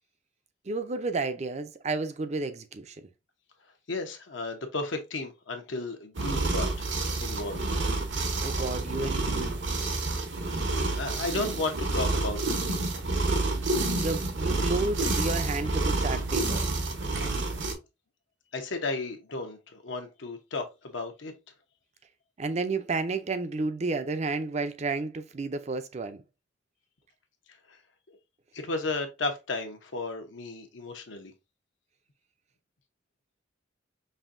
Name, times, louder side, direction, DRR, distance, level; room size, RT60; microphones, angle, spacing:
voice 1, 0.7-3.0 8.4-9.6 14.0-16.7 22.4-26.2, right 3 dB, 35° right, 0.5 m, -31 dB
voice 2, 3.9-6.7 7.2-7.6 11.0-12.5 18.5-21.3 27.7-27.8 28.5-31.3, left 3 dB, 75° left, 0.9 m, -33 dB
sound 1, 6.1-17.7, right 2 dB, 75° right, 1.0 m, -29 dB
5.4 x 2.6 x 2.5 m
head